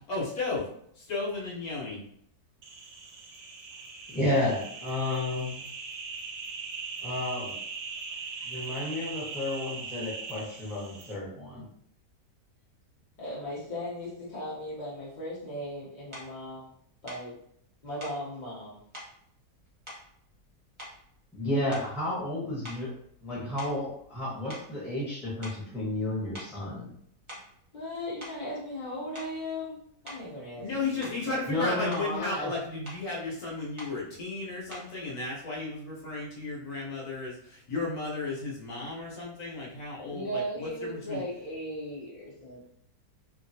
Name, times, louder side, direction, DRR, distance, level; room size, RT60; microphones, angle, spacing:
voice 1, 0.1-0.6 1.0-2.0 30.6-41.2, left 3 dB, 65° left, -4 dB, 1.2 m, -34 dB
sound 1, 2.6-11.1, right 5 dB, 75° right, 1.0 m, -40 dB
voice 2, 4.1-5.7 7.0-7.6 8.4-11.7 21.3-22.9 23.2-26.9 31.4-32.5, left 1 dB, ahead, -7 dB, 0.8 m, -32 dB
voice 3, 13.2-16.7 17.0-17.4 17.8-18.8 27.7-31.9 40.0-42.7, equal, 45° left, -7 dB, 0.6 m, -37 dB
sound 2, 16.1-16.3 17.1-17.3 18.0-18.2 18.9-19.2 19.9-20.5 20.8-21.2 21.7-22.0 22.6-24.2 24.5-24.7 25.4-25.7 26.3-26.6 27.1-27.6 28.2-28.4 29.1-29.4 30.0-30.3 31.0-31.3 31.7-32.1 32.8-33.1 33.8-34.0 34.7-35.0, equal, 30° right, 0.6 m, -45 dB
2.9 x 2.4 x 2.6 m, 0.68 s
omnidirectional pair, 1.9 m